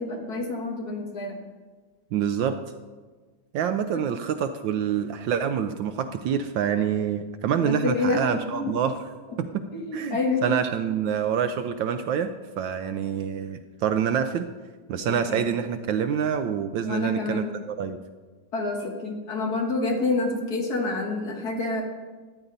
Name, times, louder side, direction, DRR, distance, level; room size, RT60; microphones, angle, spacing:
voice 1, 0.0-1.3 3.9-4.0 7.6-8.7 9.7-10.5 15.3-15.4 16.8-17.6 18.5-21.8, left 3 dB, 50° left, 1 dB, 1.9 m, -28 dB
voice 2, 2.1-2.6 3.5-9.1 9.4-9.6 9.9-12.3 12.6-14.5 14.9-18.0, right 8 dB, 75° right, 9 dB, 1.1 m, -26 dB
14.0 x 9.9 x 4.0 m, 1.4 s
omnidirectional pair, 2.3 m